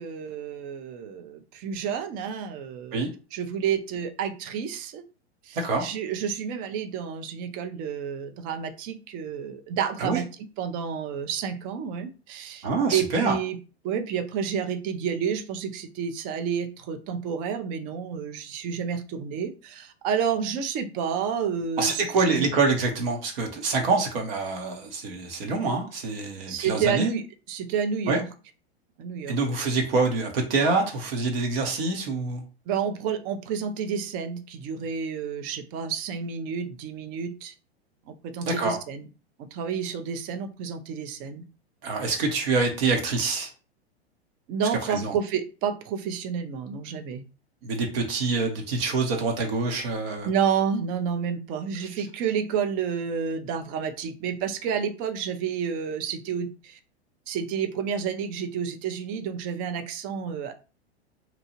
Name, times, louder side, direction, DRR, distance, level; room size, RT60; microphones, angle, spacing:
voice 1, 0.0-3.0 3.3-5.0 5.5-10.3 10.6-13.6 13.8-22.0 22.3-22.5 26.5-28.3 29.0-29.4 32.7-37.5 38.2-39.0 39.4-41.4 44.5-47.2 50.2-56.8 57.3-60.5, right 7 dB, 25° right, 8 dB, 0.4 m, -30 dB
voice 2, 12.6-13.3 21.8-27.1 28.1-28.2 29.3-32.4 38.4-38.8 41.8-43.5 44.9-45.1 47.6-50.3 52.0-52.1, right 3 dB, 60° right, 2 dB, 0.8 m, -26 dB
2.8 x 2.2 x 2.9 m, 0.33 s
figure-of-eight pair, 95°, 33 cm